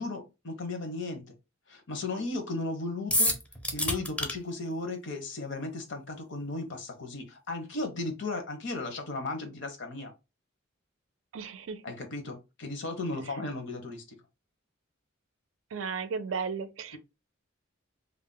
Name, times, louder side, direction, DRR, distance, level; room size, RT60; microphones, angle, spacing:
voice 1, 0.0-1.3 1.7-3.4 3.7-10.1 11.8-14.2, left 2 dB, 65° left, 0.8 m, -35 dB
sound 1, 3.1-4.3, left 1 dB, 5° left, 0.5 m, -27 dB
voice 2, 11.3-11.8 15.7-17.0, right 5 dB, 75° right, 0.4 m, -34 dB
2.4 x 2.0 x 3.7 m
head